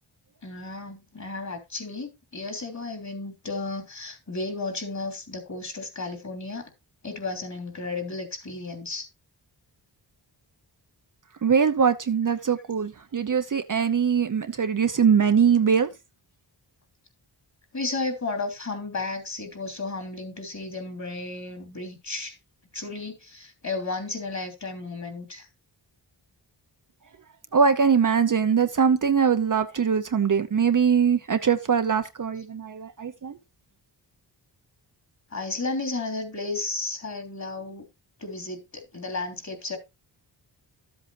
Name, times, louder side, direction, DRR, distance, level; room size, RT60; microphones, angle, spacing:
voice 1, 0.4-6.7 7.0-9.1 17.7-22.3 22.7-25.5 35.3-37.9 38.2-39.8, left 3 dB, 35° left, 3.3 m, -33 dB
voice 2, 11.4-15.9 27.5-33.3, right 6 dB, 45° right, 0.8 m, -22 dB
13.0 x 8.0 x 2.6 m
wide cardioid pair, 85°, 46 cm